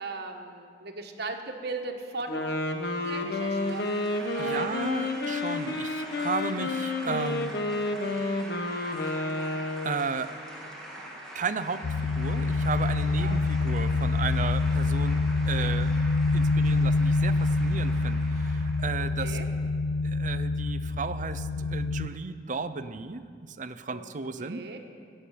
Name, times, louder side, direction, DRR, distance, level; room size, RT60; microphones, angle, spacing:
voice 1, 0.0-2.5 2.9-3.9 4.2-4.7 13.1-13.4 19.0-19.5 23.9-24.0 24.4-24.8, right 3 dB, 65° right, 3 dB, 1.5 m, -37 dB
Wind instrument woodwind instrument, 2.2-10.1, left 2 dB, 65° left, 1.1 m, -30 dB
sound 1, 3.0-19.1, right 1 dB, 5° left, 2.3 m, -44 dB
voice 2, 4.4-7.5 9.0-9.1 9.8-10.3 11.3-15.9 16.3-19.4 20.0-24.6, right 4 dB, 45° right, 11 dB, 0.6 m, -34 dB
sound 2, 11.8-22.1, left 3 dB, 90° left, 0.4 m, -26 dB
15.5 x 8.0 x 8.6 m, 2.1 s
head